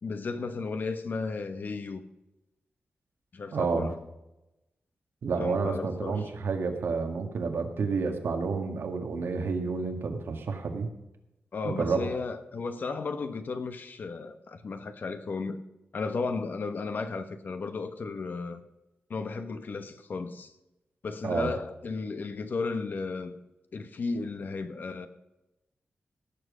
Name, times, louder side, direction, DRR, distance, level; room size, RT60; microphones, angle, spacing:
voice 1, 0.0-2.0 3.3-4.0 5.3-6.3 11.5-15.6 15.9-18.6 19.1-20.5 21.0-23.3 23.7-25.1, left 4 dB, 50° left, 1.2 m, -34 dB
voice 2, 3.5-3.9 5.2-10.9 11.6-12.0 21.2-21.5, right 4 dB, 75° right, 1.9 m, -30 dB
17.0 x 7.6 x 5.1 m
wide cardioid pair, 140°, 4 cm